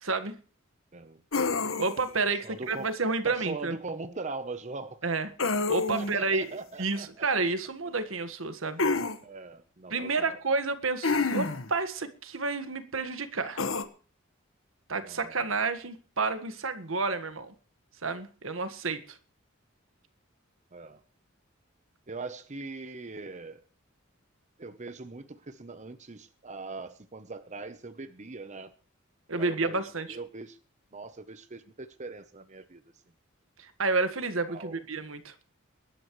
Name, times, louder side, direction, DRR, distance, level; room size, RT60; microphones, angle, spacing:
voice 1, 0.0-0.4 1.8-3.8 5.0-6.5 6.8-8.8 9.9-13.7 14.9-17.5 18.0-19.2 29.3-30.1 33.6-35.3, right 3 dB, 75° right, 1.6 m, -30 dB
sound 1, 1.3-2.1 5.4-6.2 8.8-9.2 11.0-11.7 13.6-13.8, left 3 dB, 75° left, 1.4 m, -28 dB
voice 2, 2.4-2.9 3.2-5.1 5.9-7.3 9.2-10.4 15.0-15.4 20.7-21.0 22.1-23.6 24.6-28.7 29.3-30.6 30.9-32.8 34.5-34.8, right 3 dB, 35° right, 0.9 m, -41 dB
23.0 x 12.0 x 3.2 m
head